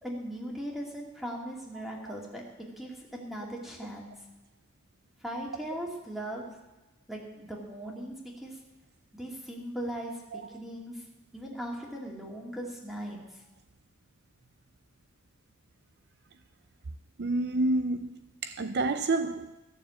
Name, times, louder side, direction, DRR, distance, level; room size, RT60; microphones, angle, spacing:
voice 1, 0.0-4.2 5.2-6.5 7.1-8.6 9.1-11.0 11.3-13.2, right 1 dB, ahead, 2.6 m, -39 dB
voice 2, 17.2-18.1 18.4-19.5, right 2 dB, 55° right, 0.5 m, -28 dB
14.5 x 7.1 x 8.3 m
head